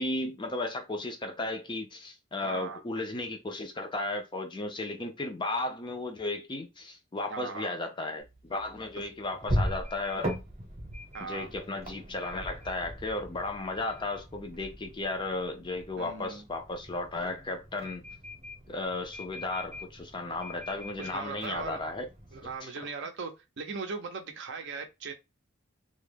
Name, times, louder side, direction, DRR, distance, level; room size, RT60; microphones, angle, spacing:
voice 1, 0.0-10.4 11.2-18.0 18.7-22.1 22.6-22.9, left 2 dB, 20° left, 0.4 m, -35 dB
voice 2, 2.4-2.8 7.3-7.8 9.0-9.1 11.1-11.5 16.0-16.4 21.0-21.8 22.3-25.1, right 4 dB, 55° right, 0.5 m, -39 dB
sound 1, 8.2-22.6, equal, 30° right, 0.8 m, -39 dB
2.2 x 2.0 x 3.3 m
head